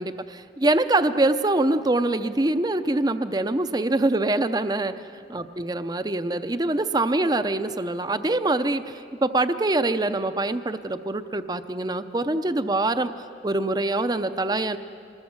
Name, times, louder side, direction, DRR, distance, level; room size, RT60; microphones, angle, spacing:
voice 1, 0.0-5.0 5.3-13.1 13.4-14.8, right 2 dB, 20° right, 11 dB, 0.6 m, -24 dB
26.0 x 20.0 x 7.3 m, 2.4 s
head